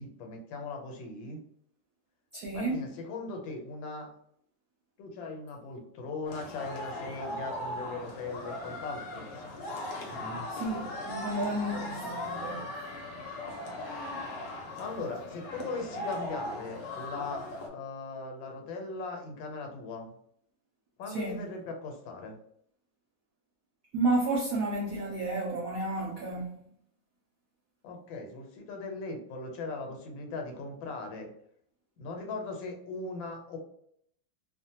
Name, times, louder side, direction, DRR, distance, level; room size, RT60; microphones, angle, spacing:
voice 1, 0.0-1.4 2.5-4.1 5.0-9.3 14.8-20.1 21.0-22.4 27.8-31.3 32.0-33.6, left 3 dB, 90° left, 1.5 m, -39 dB
voice 2, 2.3-2.8 10.1-12.7 21.1-21.4 23.9-26.6, right 2 dB, 80° right, 0.7 m, -32 dB
sound 1, 6.2-17.7, left 1 dB, 70° left, 1.3 m, -39 dB
3.1 x 2.1 x 2.7 m
omnidirectional pair, 2.0 m